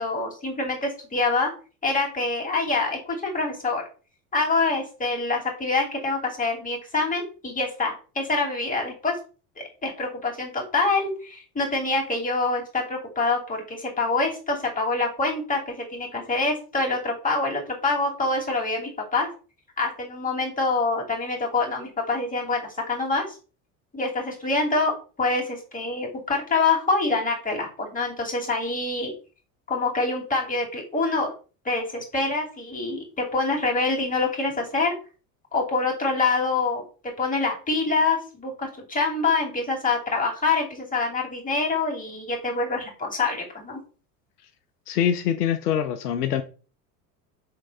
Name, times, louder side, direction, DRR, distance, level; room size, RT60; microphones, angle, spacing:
voice 1, 0.0-1.5 1.8-3.8 4.3-9.1 9.8-19.3 19.8-23.4 23.9-24.9 25.2-29.1 29.7-31.3 31.6-34.9 35.5-36.8 37.2-43.8, left 3 dB, 15° left, 2.9 m, -25 dB
voice 2, 44.9-46.4, left 9 dB, 80° left, 0.7 m, -24 dB
6.2 x 3.7 x 4.1 m
hypercardioid pair, 75°, 46 cm